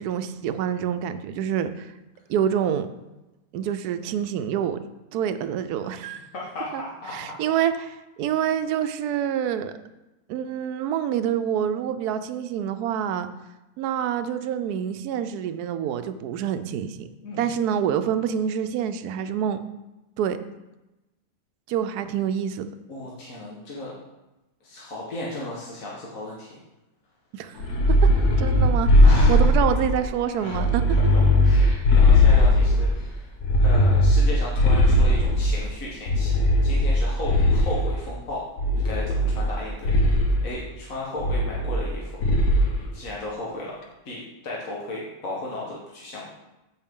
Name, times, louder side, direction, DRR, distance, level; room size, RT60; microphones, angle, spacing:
voice 1, 0.0-1.9 2.3-2.9 3.5-4.8 5.1-6.2 6.7-6.8 7.1-9.7 10.3-13.3 13.8-17.1 17.4-19.6 20.2-20.4 21.7-22.7 27.3-27.6 27.9-28.1 28.4-30.8, right 9 dB, 85° right, 10 dB, 1.1 m, -27 dB
voice 2, 6.3-7.4 17.2-17.5 22.9-23.9 24.6-26.6 29.0-29.5 30.3-33.3 33.6-36.4 36.6-38.5 38.7-42.2 42.9-43.8 44.1-46.3, left 2 dB, 60° left, -5 dB, 1.8 m, -35 dB
sound 1, 27.6-30.0 30.5-33.0 33.4-35.6 36.1-37.9 38.6-39.5 39.8-40.3 41.2-41.9 42.2-42.7, left 1 dB, 85° left, 1.6 m, -18 dB
9.0 x 7.7 x 3.7 m, 1.0 s
omnidirectional pair, 1.6 m